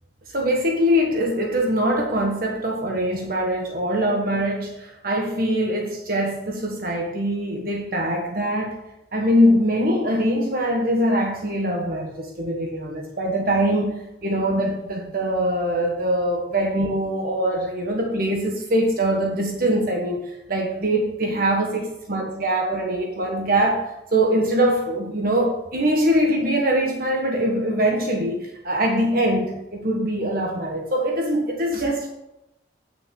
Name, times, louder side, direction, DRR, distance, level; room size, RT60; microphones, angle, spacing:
voice 1, 0.3-8.8 9.1-32.1, equal, 50° right, 1 dB, 1.4 m, -23 dB
9.1 x 6.4 x 6.3 m, 0.90 s
head